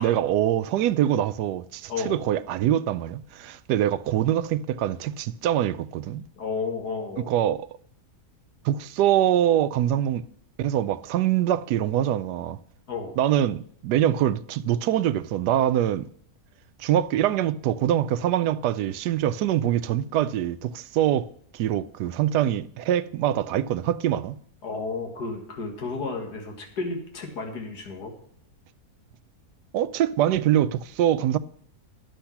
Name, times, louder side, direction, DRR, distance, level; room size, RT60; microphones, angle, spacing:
voice 1, 0.0-6.2 7.3-7.7 8.6-10.2 10.6-12.6 13.2-16.1 16.8-24.4 29.7-31.4, right 11 dB, 85° right, 1.2 m, -24 dB
voice 2, 1.9-2.2 6.4-7.3 12.9-13.2 24.6-28.1, left 4 dB, 80° left, 2.3 m, -32 dB
10.5 x 7.1 x 5.8 m
omnidirectional pair, 1.7 m